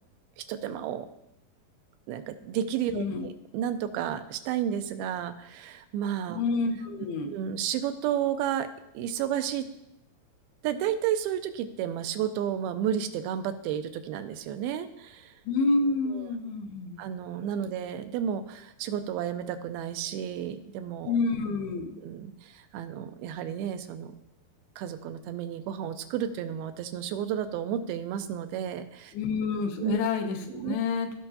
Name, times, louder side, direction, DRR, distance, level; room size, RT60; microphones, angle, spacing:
voice 1, 0.4-1.1 2.1-6.4 7.3-8.7 8.9-9.7 10.6-15.3 16.1-16.3 17.0-21.2 22.0-24.1 24.8-29.1 29.8-30.0 30.5-30.8, right 9 dB, 85° right, 9 dB, 2.5 m, -32 dB
voice 2, 2.9-3.3 6.3-7.4 15.5-17.0 21.1-22.0 29.1-31.1, left 4 dB, 90° left, 5 dB, 2.8 m, -28 dB
16.0 x 5.5 x 2.8 m, 0.82 s
omnidirectional pair, 4.3 m